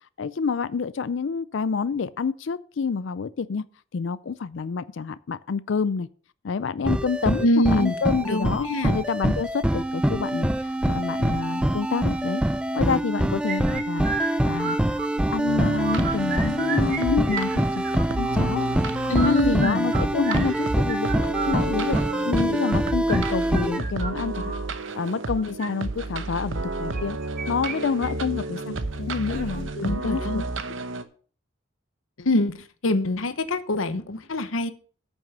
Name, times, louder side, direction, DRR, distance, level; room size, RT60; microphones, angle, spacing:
voice 1, 0.2-3.6 3.9-6.1 6.4-12.4 12.7-15.0 15.3-17.9 18.2-18.7 19.0-22.0 22.2-24.5 24.9-27.2 27.5-30.4, left 5 dB, 65° left, 0.4 m, -28 dB
sound 1, 6.9-23.8, right 1 dB, 5° right, 0.5 m, -25 dB
voice 2, 7.4-7.9 8.2-9.0 19.1-19.9 29.8-30.5 32.2-34.7, left 1 dB, 85° left, 0.9 m, -24 dB
sound 2, 13.5-15.4 15.7-17.0 17.3-18.3 19.0-24.6 25.4-25.7 26.9-27.8 28.0-28.1 28.6-28.7 29.3-29.6, right 5 dB, 40° right, 1.2 m, -33 dB
sound 3, 15.4-31.0, right 2 dB, 70° right, 0.9 m, -32 dB
8.9 x 6.2 x 6.7 m
head